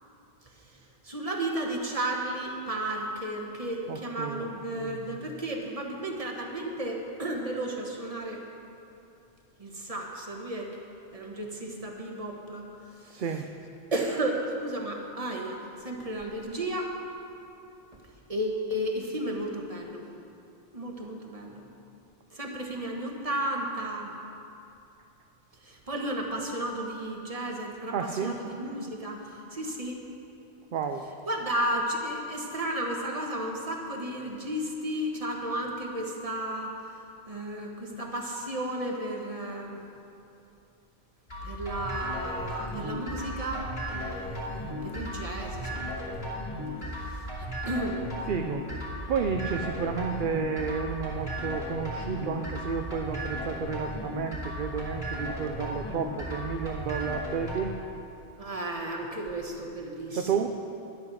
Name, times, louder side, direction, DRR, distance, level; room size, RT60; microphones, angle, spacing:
voice 1, 0.5-8.4 9.6-10.8 11.1-13.2 13.9-16.9 18.3-20.0 20.7-21.6 22.3-24.1 25.6-30.1 31.3-36.8 37.3-39.8 41.4-46.4 46.9-48.1 58.4-60.5, right 1 dB, 35° right, 1 dB, 1.5 m, -33 dB
voice 2, 3.9-4.5 13.1-13.5 27.9-28.4 28.6-28.8 30.7-31.1 46.8-46.9 48.3-57.8 60.1-60.5, right 6 dB, 60° right, 5 dB, 0.7 m, -31 dB
sound 1, 41.3-57.6, equal, 75° left, 3.2 m, -35 dB
12.0 x 10.0 x 6.3 m, 2.7 s
omnidirectional pair, 1.0 m